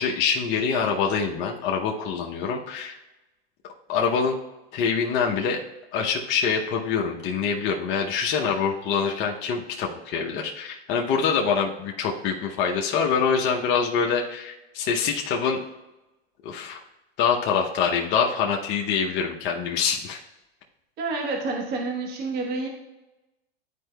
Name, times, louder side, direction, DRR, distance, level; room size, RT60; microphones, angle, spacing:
voice 1, 0.0-3.0 3.9-4.4 4.7-5.6 5.9-15.6 16.4-16.8 17.2-20.2, left 6 dB, 35° left, 0 dB, 0.7 m, -25 dB
voice 2, 21.0-22.7, right 3 dB, 30° right, 0 dB, 1.1 m, -28 dB
10.5 x 4.4 x 2.2 m, 1.0 s
hypercardioid pair, 125°, 31 cm